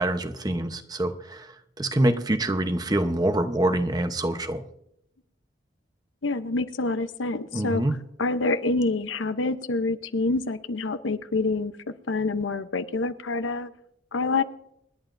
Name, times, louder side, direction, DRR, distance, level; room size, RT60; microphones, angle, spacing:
voice 1, 0.0-4.6 7.5-8.0, right 1 dB, 20° right, 8 dB, 0.9 m, -25 dB
voice 2, 6.2-7.8 8.2-13.7 14.1-14.4, left 3 dB, 85° left, 11 dB, 0.8 m, -27 dB
26.5 x 11.0 x 2.6 m, 0.76 s
head